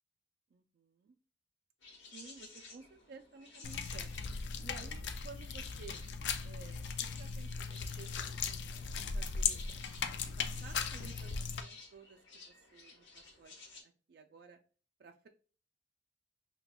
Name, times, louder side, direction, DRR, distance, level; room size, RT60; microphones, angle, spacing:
voice 1, 0.5-1.1 2.1-4.1 4.6-6.0 6.4-9.6 10.1-14.6 15.0-15.3, right 4 dB, 60° right, 5 dB, 0.3 m, -55 dB
sound 1, 1.8-13.8, left 3 dB, 85° left, 1.0 m, -56 dB
sound 2, 3.6-11.6, left 6 dB, 70° left, 0.4 m, -38 dB
5.6 x 2.2 x 2.2 m, 0.38 s
head